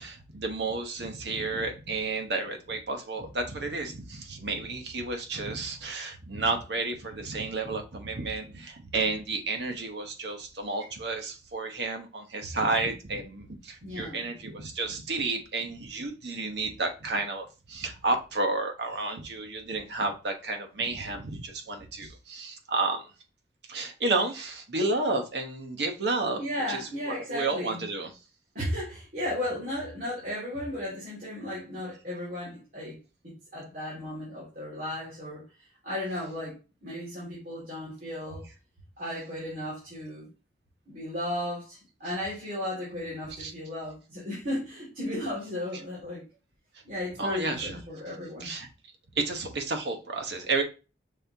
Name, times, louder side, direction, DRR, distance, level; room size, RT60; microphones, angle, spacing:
voice 1, 0.0-23.1 23.7-26.4 26.7-28.1 43.4-43.5 47.2-47.8 48.4-48.7 49.1-50.6, right 3 dB, 75° right, 1.0 m, -31 dB
voice 2, 13.8-14.4 26.4-27.8 28.5-33.0 33.2-35.4 35.8-38.4 39.0-40.3 40.9-46.2 46.9-48.5, left 1 dB, 50° right, 2.3 m, -35 dB
5.6 x 3.4 x 2.7 m
head